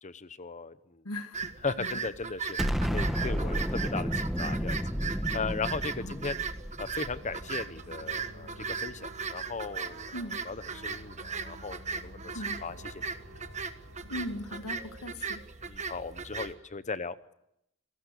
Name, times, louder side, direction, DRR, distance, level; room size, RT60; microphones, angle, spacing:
voice 1, 0.0-1.0 1.6-2.6 2.9-4.8 5.3-6.4 6.8-8.5 8.8-10.0 10.4-13.0 15.6-17.3, left 4 dB, 35° left, 14 dB, 0.9 m, -37 dB
voice 2, 1.0-1.5 1.8-2.0 6.0-6.2 10.1-10.4 12.3-12.6 14.1-15.4, left 1 dB, 75° left, 8 dB, 1.8 m, -39 dB
sound 1, 1.3-16.5, right 5 dB, 30° right, 1.4 m, -38 dB
Explosion, 2.6-7.8, equal, ahead, 1.1 m, -32 dB
sound 2, 7.0-15.0, right 1 dB, 65° right, 4.6 m, -50 dB
27.0 x 18.5 x 8.2 m, 0.82 s
head